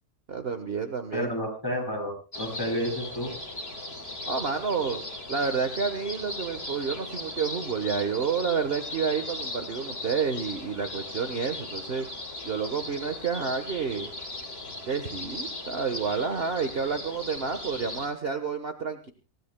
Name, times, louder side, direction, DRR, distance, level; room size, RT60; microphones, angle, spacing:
voice 1, 0.3-1.3 4.3-5.0 5.3-12.1 12.4-14.1 14.9-19.1, right 5 dB, 40° right, 7 dB, 1.4 m, -29 dB
voice 2, 1.1-3.3, equal, 15° left, 0 dB, 8.1 m, -30 dB
sound 1, 2.3-18.1, left 2 dB, 40° left, 3.6 m, -38 dB
27.5 x 16.5 x 2.2 m, 0.34 s
omnidirectional pair, 1.6 m